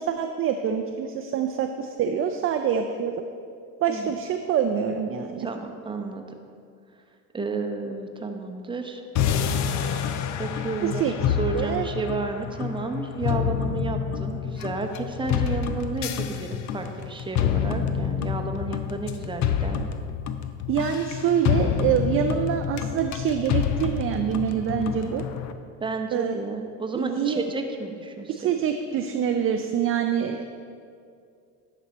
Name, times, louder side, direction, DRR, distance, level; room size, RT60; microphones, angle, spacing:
voice 1, 0.0-3.2 3.8-5.5 10.8-11.1 11.5-11.9 20.7-25.2 26.1-26.3 26.9-27.5 28.3-30.5, right 8 dB, 35° right, 5 dB, 0.4 m, -25 dB
voice 2, 5.4-6.2 7.3-9.0 10.4-19.8 25.8-28.5, right 3 dB, 10° right, 4 dB, 0.8 m, -32 dB
sound 1, 9.2-25.5, left 8 dB, 45° left, 0.5 m, -28 dB
11.0 x 4.2 x 4.2 m, 2.3 s
supercardioid pair, 90°, 40 cm